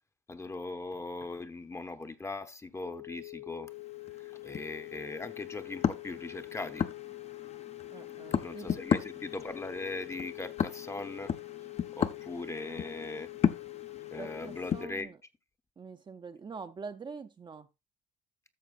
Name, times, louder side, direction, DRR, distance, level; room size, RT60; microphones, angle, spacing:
voice 1, 0.3-3.7 4.2-6.9 8.3-11.3 12.0-13.3 14.1-15.1, left 3 dB, 15° left, 0.8 m, -40 dB
sound 1, 2.8-14.9, left 22 dB, 75° left, 0.4 m, -45 dB
sound 2, 3.7-14.9, left 8 dB, 40° left, 0.7 m, -35 dB
voice 2, 7.9-8.8 14.1-15.2 15.8-17.7, right 5 dB, 25° right, 0.6 m, -45 dB
13.0 x 6.7 x 2.5 m
cardioid pair, 110°, 17 cm